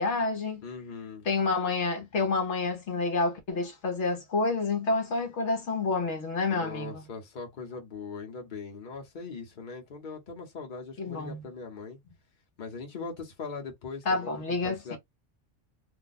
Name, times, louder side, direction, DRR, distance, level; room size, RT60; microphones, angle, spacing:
voice 1, 0.0-0.6 1.3-7.0 11.0-11.4 14.1-15.0, left 3 dB, 65° left, 1.1 m, -29 dB
voice 2, 0.6-1.2 6.5-12.0 12.6-15.0, left 4 dB, 40° left, 1.1 m, -40 dB
2.7 x 2.1 x 4.0 m
omnidirectional pair, 1.3 m